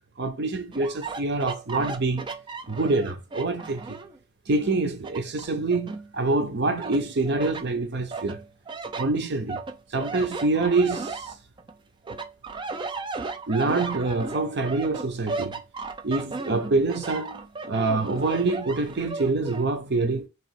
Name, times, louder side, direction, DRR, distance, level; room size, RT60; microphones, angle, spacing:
voice 1, 0.2-2.3 2.7-4.0 4.5-8.4 9.0-9.6 9.9-11.3 13.5-15.6 16.0-17.4 17.7-20.3, right 3 dB, 55° right, 0.7 m, -26 dB
sound 1, 0.7-4.2 4.6-6.4 6.8-7.7 8.1-11.7 12.1-19.7, right 4 dB, 20° right, 0.3 m, -35 dB
3.1 x 2.9 x 4.5 m
head